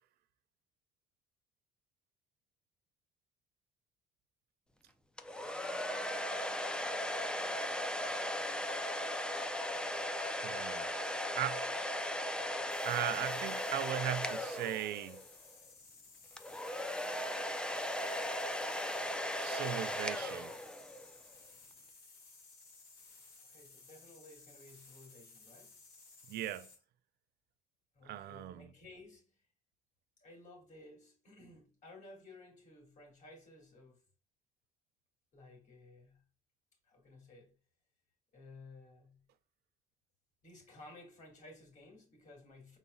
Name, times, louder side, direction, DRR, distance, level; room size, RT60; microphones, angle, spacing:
hair dryer, 5.2-15.3 16.4-21.1, left 1 dB, 5° left, 0.5 m, -37 dB
voice 1, 10.4-10.9 11.3-11.6 12.8-15.2 19.4-20.5 26.3-26.7 28.0-28.7, right 12 dB, 70° right, 0.5 m, -38 dB
sound 1, 12.7-26.8, left 3 dB, 90° left, 2.1 m, -58 dB
voice 2, 23.4-25.8 27.9-29.4 30.2-34.0 35.3-36.2 36.8-37.5 38.3-39.2 40.4-42.8, left 2 dB, 45° left, 2.6 m, -56 dB
5.3 x 4.1 x 2.3 m
cardioid pair, 110°, 17 cm